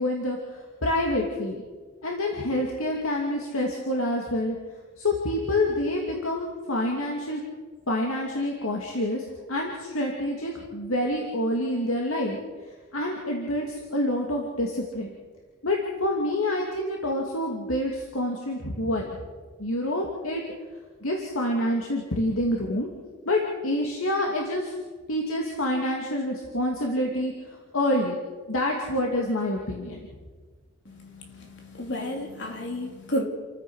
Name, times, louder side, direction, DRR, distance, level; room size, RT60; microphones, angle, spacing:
voice 1, 0.0-1.6 2.0-4.6 5.0-7.4 7.9-12.4 12.9-15.1 15.6-19.1 19.6-20.4 21.0-22.9 23.2-24.8 25.1-28.2 28.5-30.0, left 1 dB, 80° left, 0 dB, 2.6 m, -27 dB
voice 2, 30.8-33.2, left 1 dB, 55° left, 2 dB, 3.3 m, -32 dB
29.0 x 15.0 x 6.4 m, 1.4 s
head